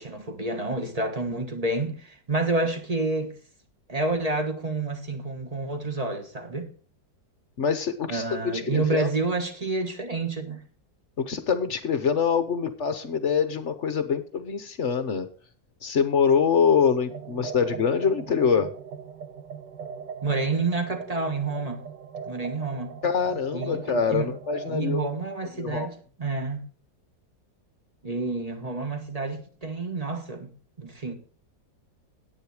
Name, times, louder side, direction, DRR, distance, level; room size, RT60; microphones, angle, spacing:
voice 1, 0.0-3.4 3.9-6.7 8.1-10.6 20.2-21.8 22.3-23.0 23.5-24.3 24.7-26.7 28.0-30.5 30.8-31.1, right 3 dB, 25° right, 1.3 m, -29 dB
voice 2, 7.6-9.1 11.2-15.3 15.8-18.7 23.0-25.0 25.6-25.9, left 6 dB, 50° left, 1.0 m, -24 dB
sound 1, 17.1-24.8, right 6 dB, 75° right, 1.5 m, -40 dB
10.0 x 9.1 x 4.8 m
omnidirectional pair, 1.9 m